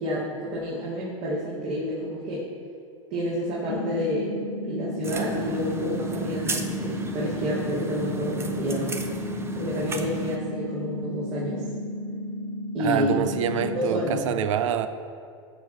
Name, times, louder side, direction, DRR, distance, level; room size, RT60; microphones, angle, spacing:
voice 1, 0.0-2.5 3.1-4.3 4.6-9.0 9.5-11.7 12.7-13.2 13.5-14.2, equal, 50° right, -7 dB, 2.4 m, -29 dB
sound 1, 3.7-13.7, left 1 dB, 80° left, 1.5 m, -34 dB
sound 2, 5.0-10.4, right 1 dB, 15° right, 0.8 m, -34 dB
voice 2, 12.8-14.9, right 8 dB, 70° right, 11 dB, 0.6 m, -26 dB
12.5 x 6.3 x 4.2 m, 2.3 s
hypercardioid pair, 95°, 17 cm